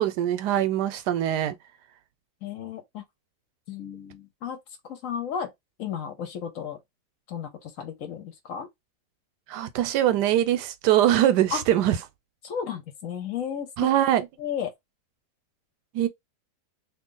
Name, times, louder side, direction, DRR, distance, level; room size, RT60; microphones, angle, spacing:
voice 1, 0.0-1.5 9.5-12.0 13.8-14.3 15.9-16.1, right 12 dB, 90° right, 1.2 m, -22 dB
voice 2, 2.4-3.1 3.7-4.6 4.8-5.5 5.8-6.8 7.3-8.7 11.5-11.6 12.4-13.9 14.4-14.7, left 7 dB, 60° left, 1.1 m, -33 dB
3.0 x 2.4 x 3.7 m
omnidirectional pair, 1.7 m